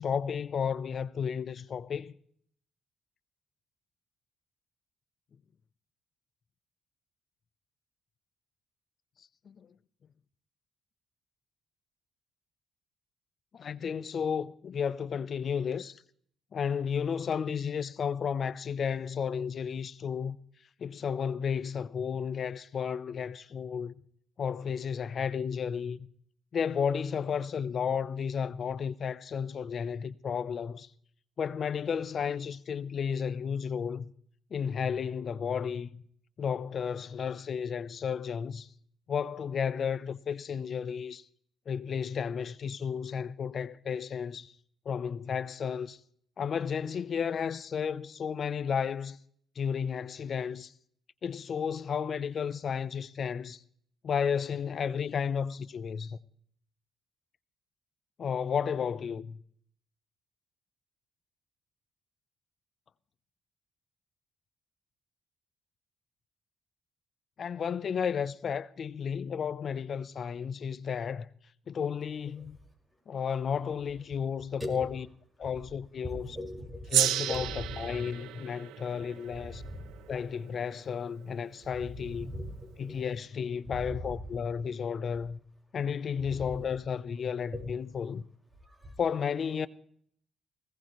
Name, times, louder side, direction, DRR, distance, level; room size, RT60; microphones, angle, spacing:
voice 1, 0.0-2.2 9.5-9.7 13.5-16.0 16.5-20.4 20.8-24.0 24.4-26.1 26.5-30.9 31.4-34.1 34.5-36.1 36.4-38.7 39.1-41.2 41.7-44.5 44.9-46.0 46.4-49.2 49.6-50.7 51.2-53.6 54.0-56.2 58.2-59.4 67.4-71.3 71.7-72.6 73.1-75.1 75.4-76.4 76.9-79.6 80.1-82.3 82.8-85.4 85.7-88.2 89.0-89.7, left 7 dB, 50° left, 0.7 m, -33 dB
voice 2, 74.6-74.9 76.0-76.9 77.3-77.8 79.0-79.9 81.8-83.0 83.7-84.0 85.2-85.3 86.2-86.6 87.5-87.6 88.6-89.0, left 1 dB, 10° right, 5.3 m, -40 dB
Gong, 76.9-81.6, right 12 dB, 85° right, 0.6 m, -33 dB
19.5 x 17.5 x 3.1 m
cardioid pair, 90°, 0 cm